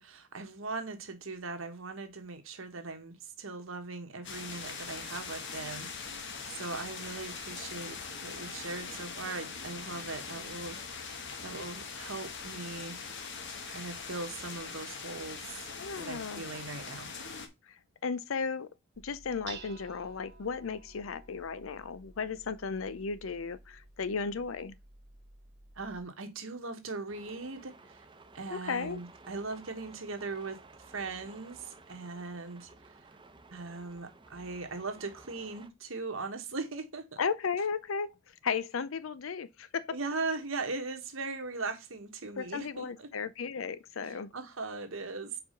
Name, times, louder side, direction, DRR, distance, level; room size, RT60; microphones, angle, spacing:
voice 1, 0.0-6.2 6.5-8.0 8.2-10.8 11.4-13.0 13.6-15.4 16.0-17.1 25.8-28.0 28.3-32.9 33.5-37.2 39.9-43.1 44.1-45.4, right 3 dB, 85° right, 1.4 m, -39 dB
sound 1, 4.2-17.5, left 5 dB, 65° left, 1.2 m, -42 dB
voice 2, 15.8-16.4 17.7-18.7 19.0-24.8 28.5-29.0 37.2-38.1 38.4-39.9 42.4-44.3, left 5 dB, 80° left, 0.6 m, -35 dB
Dishes pots and pans, 18.9-26.0, right 4 dB, 60° right, 1.3 m, -52 dB
sound 2, 27.1-35.7, right 3 dB, 25° right, 0.8 m, -55 dB
4.9 x 4.7 x 5.0 m
head